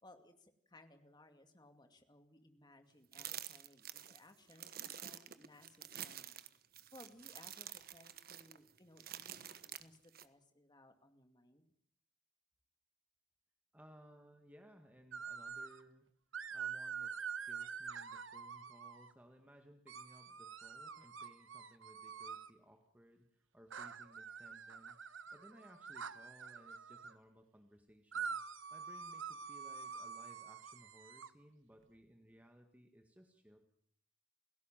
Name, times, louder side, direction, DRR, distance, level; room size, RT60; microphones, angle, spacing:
voice 1, 0.0-6.4 6.9-11.6, left 1 dB, 20° left, 7 dB, 2.4 m, -62 dB
sound 1, 3.1-10.3, right 11 dB, 50° right, 1.2 m, -49 dB
voice 2, 13.7-16.1 16.5-25.0 25.3-28.4 28.7-33.6, equal, 10° right, 5 dB, 1.9 m, -62 dB
sound 2, 15.1-15.8 16.3-19.1 19.9-22.5 23.7-27.1 28.1-31.3, right 6 dB, 90° right, 1.4 m, -46 dB
29.5 x 17.0 x 7.5 m, 0.62 s
head